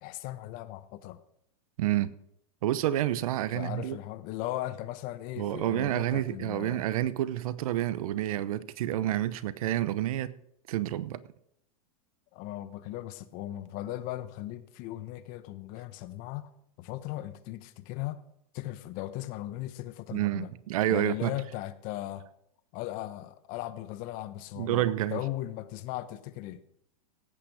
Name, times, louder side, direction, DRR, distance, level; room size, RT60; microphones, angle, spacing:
voice 1, 0.0-1.2 3.5-6.8 12.3-16.5 16.8-18.2 18.5-20.5 20.9-22.3 22.7-26.6, left 15 dB, 45° left, 12 dB, 1.2 m, -38 dB
voice 2, 1.8-2.2 2.6-4.0 5.4-10.3 10.7-11.2 20.1-21.3 24.6-25.2, right 13 dB, 70° right, 17 dB, 0.9 m, -29 dB
17.0 x 8.6 x 4.9 m, 0.74 s
hypercardioid pair, 115°, 19 cm